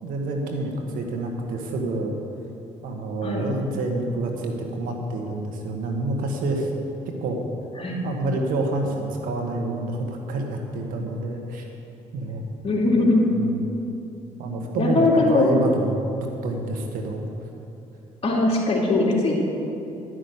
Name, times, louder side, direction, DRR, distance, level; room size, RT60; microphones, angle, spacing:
voice 1, 0.0-2.1 2.8-6.7 7.2-7.4 8.0-11.7 12.1-12.4 13.3-13.7 14.4-16.0 16.4-17.2, right 2 dB, 80° right, 2 dB, 1.6 m, -28 dB
voice 2, 12.6-13.3 14.8-15.5 18.2-19.4, left 2 dB, 45° left, -3 dB, 2.9 m, -20 dB
12.0 x 6.3 x 8.1 m, 2.9 s
supercardioid pair, 70°, 14 cm